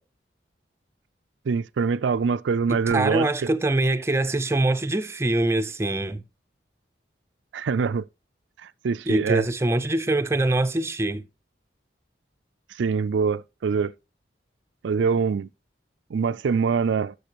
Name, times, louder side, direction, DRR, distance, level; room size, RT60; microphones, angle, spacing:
voice 1, 1.5-3.5 7.5-8.0 8.8-9.5 12.8-13.9 14.8-15.5 16.1-17.1, right 5 dB, 85° right, 0.4 m, -24 dB
voice 2, 2.7-6.2 9.1-11.2, right 2 dB, 15° right, 0.5 m, -24 dB
12.0 x 6.7 x 3.0 m
head